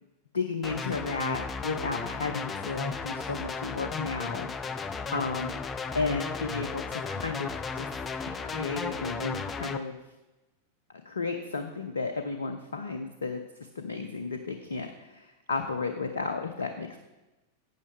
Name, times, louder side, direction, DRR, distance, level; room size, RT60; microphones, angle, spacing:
voice 1, 0.3-4.5 5.1-5.6 5.9-7.9 8.3-10.0 11.0-17.0, left 4 dB, 70° left, 7 dB, 0.6 m, -33 dB
sound 1, 0.6-9.8, left 4 dB, 20° left, 0.5 m, -35 dB
12.0 x 8.6 x 3.3 m, 1.0 s
figure-of-eight pair, 90°, 0 cm